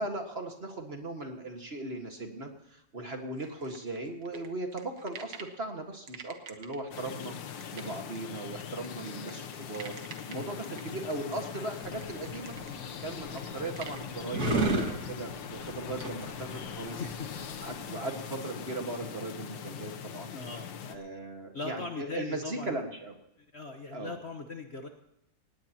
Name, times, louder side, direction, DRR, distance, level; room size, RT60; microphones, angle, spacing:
voice 1, 0.0-7.3 7.7-10.0 10.3-12.6 13.0-14.5 14.8-17.0 17.6-20.4 20.9-23.1 23.9-24.2, right 2 dB, 35° right, 4 dB, 1.9 m, -38 dB
sound 1, 3.4-5.6 6.1-14.0, right 7 dB, 70° right, 1.9 m, -48 dB
sound 2, 6.9-21.0, left 8 dB, 85° left, 1.7 m, -41 dB
sound 3, 11.8-17.8, right 2 dB, 55° right, 3.0 m, -34 dB
voice 2, 17.0-17.3 20.3-20.7 21.5-22.8 23.5-24.9, left 3 dB, 40° left, 4 dB, 1.3 m, -39 dB
18.5 x 18.0 x 2.9 m, 0.84 s
omnidirectional pair, 2.0 m